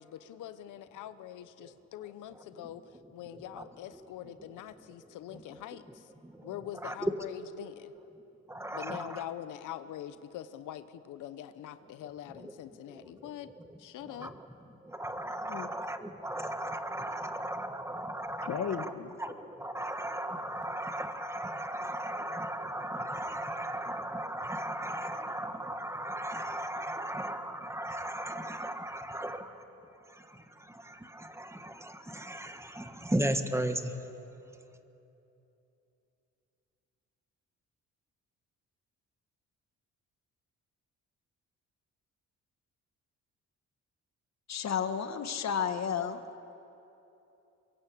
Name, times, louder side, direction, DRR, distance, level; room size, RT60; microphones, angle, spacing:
voice 1, 0.0-2.8 3.1-6.1 6.4-7.9 8.7-13.5 13.8-14.3, left 11 dB, 85° left, 12 dB, 1.0 m, -44 dB
voice 2, 6.8-7.2 8.5-9.2 13.2-13.3 14.2-14.4 14.8-18.9 19.2-29.6 30.1-33.9, right 1 dB, 10° right, 7 dB, 1.7 m, -36 dB
voice 3, 18.4-19.1 44.5-46.2, left 7 dB, 60° left, 9 dB, 1.6 m, -32 dB
23.0 x 22.5 x 8.6 m, 3.0 s
cardioid pair, 90°, 30 cm